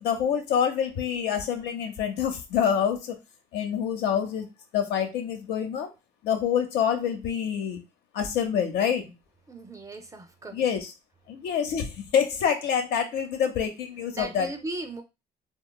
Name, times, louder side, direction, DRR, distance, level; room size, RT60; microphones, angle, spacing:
voice 1, 0.0-3.2 3.5-4.5 4.7-5.9 6.2-7.8 8.1-9.1 10.5-10.9 11.3-14.5, left 8 dB, 75° left, 6 dB, 0.7 m, -26 dB
voice 2, 9.5-10.6 14.1-15.0, right 2 dB, 20° right, 7 dB, 0.4 m, -37 dB
2.8 x 2.2 x 2.2 m, 0.25 s
cardioid pair, 110°, 17 cm